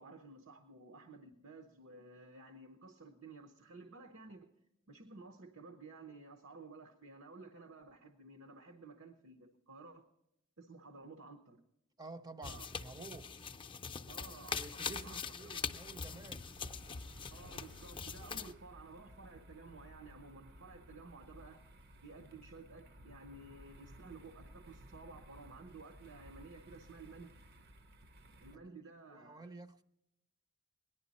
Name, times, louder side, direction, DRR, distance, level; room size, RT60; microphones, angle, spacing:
voice 1, 0.0-4.5 4.9-10.1 10.6-11.6 12.5-12.7 14.1-15.2 15.5-15.7 17.3-21.6 22.0-27.4 28.4-29.5, right 3 dB, 80° right, 1.0 m, -54 dB
voice 2, 12.0-13.5 14.5-16.5 28.5-29.8, right 3 dB, 20° right, 0.5 m, -51 dB
sound 1, 12.4-18.5, left 6 dB, 25° left, 0.5 m, -43 dB
sound 2, 15.5-28.6, equal, 55° right, 0.7 m, -57 dB
18.5 x 11.0 x 4.1 m
head